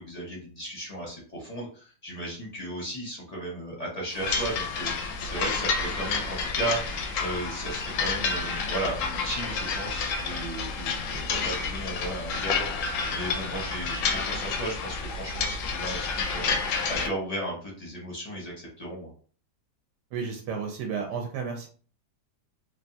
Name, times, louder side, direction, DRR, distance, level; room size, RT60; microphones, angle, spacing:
voice 1, 0.0-6.8 7.2-12.7 13.1-19.1, right 1 dB, 35° left, -3 dB, 0.6 m, -35 dB
sound 1, 4.2-17.1, left 4 dB, 70° left, 0.9 m, -30 dB
voice 2, 20.1-21.7, right 6 dB, 80° right, 2 dB, 1.2 m, -32 dB
3.3 x 2.3 x 2.6 m, 0.43 s
omnidirectional pair, 1.8 m